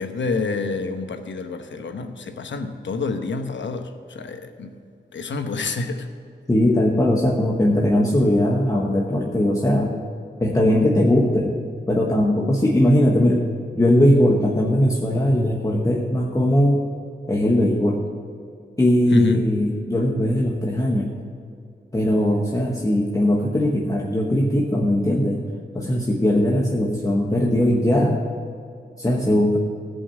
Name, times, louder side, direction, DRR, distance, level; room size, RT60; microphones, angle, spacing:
voice 1, 0.0-4.7 5.1-6.1 19.1-19.5, left 4 dB, 85° left, 7 dB, 1.0 m, -28 dB
voice 2, 6.5-10.0 10.4-11.6 11.9-13.4 13.7-16.8 17.3-18.0 18.8-21.1 21.9-25.4 25.7-28.2 29.0-29.6, left 1 dB, 20° left, -2 dB, 1.1 m, -19 dB
15.0 x 5.5 x 7.3 m, 2.4 s
wide cardioid pair, 110°, 18 cm